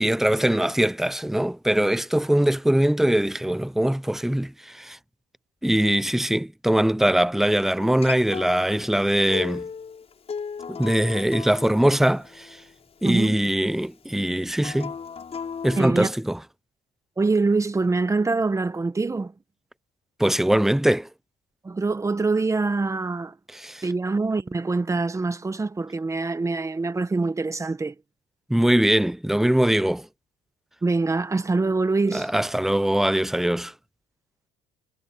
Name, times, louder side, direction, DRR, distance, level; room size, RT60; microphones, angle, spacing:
voice 1, 0.0-5.0 5.6-9.6 10.7-12.5 13.0-14.9 15.6-16.4 20.2-21.1 23.5-23.8 28.5-30.1 32.1-33.7, right 1 dB, ahead, 0.6 m, -22 dB
Acoustic guitar, 7.8-13.0 14.6-15.8, left 6 dB, 35° left, 6.0 m, -36 dB
voice 2, 13.0-13.4 15.8-16.1 17.2-19.3 21.6-23.3 23.8-27.9 30.8-32.3, right 3 dB, 20° right, 1.2 m, -24 dB
cardioid pair, 110°, 17 cm